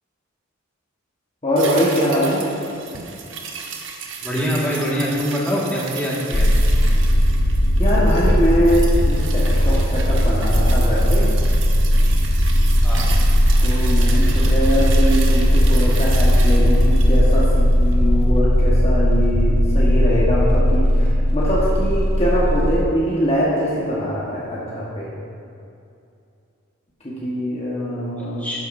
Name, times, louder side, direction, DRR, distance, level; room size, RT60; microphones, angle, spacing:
voice 1, 1.4-2.5 7.8-11.3 13.6-25.1 27.0-28.4, equal, 30° left, -7 dB, 1.4 m, -22 dB
sound 1, 1.6-18.1 18.4-18.5, right 5 dB, 70° right, 1.0 m, -34 dB
voice 2, 4.2-6.5 12.8-13.1 28.2-28.6, equal, 10° left, -7 dB, 1.8 m, -24 dB
sound 2, 6.3-22.8, equal, 80° left, 1.0 m, -17 dB
12.5 x 9.5 x 2.7 m, 2.6 s
head